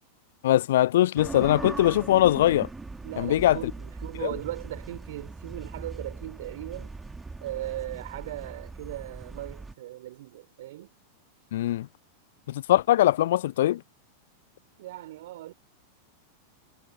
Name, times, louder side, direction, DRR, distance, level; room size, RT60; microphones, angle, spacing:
voice 1, 0.4-2.7 3.2-3.6 4.2-4.3 11.5-11.9 12.5-13.8, left 13 dB, 55° left, 0.4 m, -21 dB
sound 1, 1.2-9.7, right 3 dB, 10° right, 2.1 m, -40 dB
voice 2, 3.0-7.0 7.4-10.9 14.8-15.5, right 15 dB, 55° right, 5.7 m, -38 dB
figure-of-eight pair, 90°, 0 cm